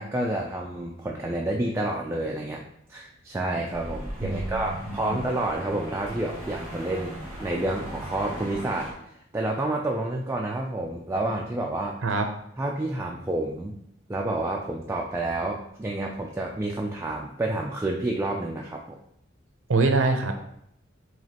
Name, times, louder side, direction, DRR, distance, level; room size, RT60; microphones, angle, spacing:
voice 1, 0.0-2.6 2.9-8.9 9.3-12.0 12.6-13.8 14.1-19.0, right 1 dB, 15° right, -1 dB, 0.3 m, -29 dB
sound 1, 3.7-8.9, equal, 15° left, 1.7 m, -38 dB
voice 2, 4.2-5.2 12.0-12.3 19.7-20.4, right 3 dB, 75° right, 5 dB, 0.6 m, -25 dB
4.9 x 3.0 x 2.9 m, 0.74 s
head